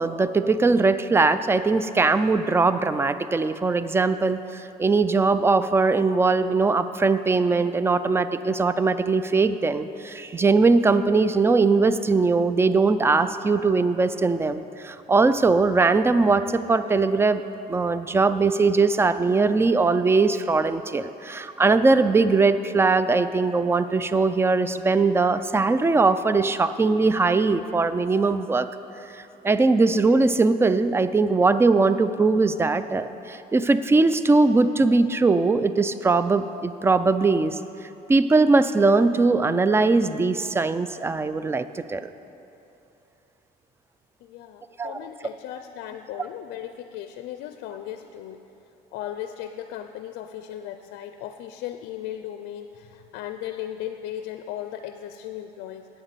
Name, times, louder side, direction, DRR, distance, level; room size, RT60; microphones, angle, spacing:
voice 1, 0.0-17.4 17.7-28.7 29.4-37.6 38.1-42.1 44.8-45.1, right 3 dB, 15° right, 12 dB, 0.3 m, -21 dB
voice 2, 44.2-48.4 48.9-55.9, left 11 dB, 85° left, 8 dB, 0.4 m, -36 dB
9.0 x 7.2 x 6.7 m, 2.9 s
cardioid pair, 110°, 17 cm